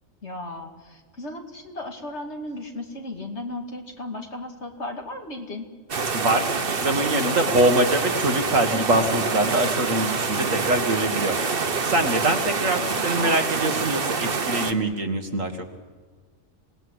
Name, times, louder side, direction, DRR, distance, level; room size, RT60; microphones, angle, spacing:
voice 1, 0.2-5.7 13.0-13.9, left 1 dB, 55° left, 4 dB, 2.8 m, -35 dB
sound 1, 5.9-14.7, right 4 dB, 45° right, 1.4 m, -26 dB
voice 2, 6.1-6.5 6.7-11.4 11.9-15.5, right 1 dB, 70° right, 6 dB, 2.3 m, -23 dB
27.0 x 18.5 x 8.1 m, 1.5 s
omnidirectional pair, 1.4 m